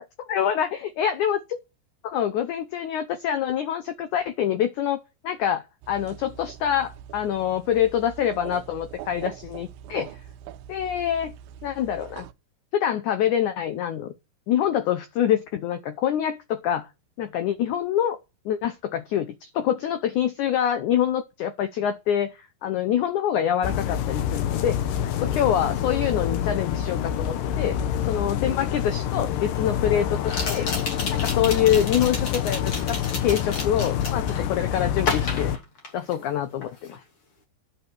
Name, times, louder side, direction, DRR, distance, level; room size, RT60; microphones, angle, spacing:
voice 1, 0.3-1.4 2.0-5.0 5.2-10.2 10.7-11.3 11.6-12.2 12.7-14.1 14.5-16.9 17.2-18.2 18.4-24.8 25.2-27.8 28.1-30.7 31.1-35.6 35.9-37.0, left 10 dB, 85° left, 1.7 m, -25 dB
sound 1, 5.8-12.3, right 11 dB, 80° right, 2.4 m, -42 dB
sound 2, 23.6-35.6, left 9 dB, 70° left, 2.2 m, -27 dB
sound 3, 28.6-28.7 30.2-34.5 35.0-36.3 36.6-37.0, left 3 dB, 40° left, 3.1 m, -32 dB
11.0 x 6.9 x 6.0 m
omnidirectional pair, 4.6 m